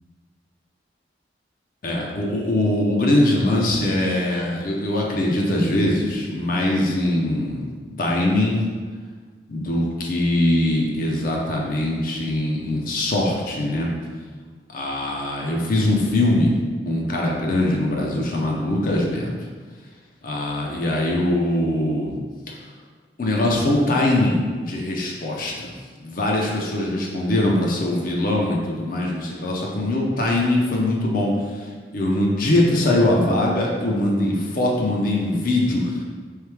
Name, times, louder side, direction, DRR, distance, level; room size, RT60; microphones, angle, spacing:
voice 1, 1.8-7.7 8.0-8.6 9.5-13.9 14.7-16.5 16.8-19.3 20.2-22.1 23.2-25.7 26.0-31.7 31.9-36.0, left 1 dB, 50° left, -2 dB, 0.6 m, -22 dB
3.6 x 3.2 x 3.4 m, 1.5 s
head